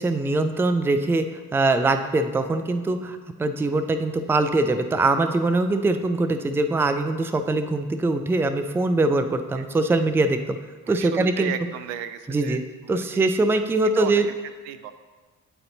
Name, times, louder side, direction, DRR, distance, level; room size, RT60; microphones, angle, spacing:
voice 1, 0.0-10.6 10.9-11.5 12.3-12.6 12.9-14.3, right 2 dB, 5° right, 9 dB, 0.4 m, -22 dB
voice 2, 10.9-12.6 12.9-13.3 13.5-14.2 14.6-14.9, right 10 dB, 75° right, 10 dB, 0.5 m, -35 dB
9.0 x 4.2 x 3.9 m, 1.4 s
hypercardioid pair, 45°, 43 cm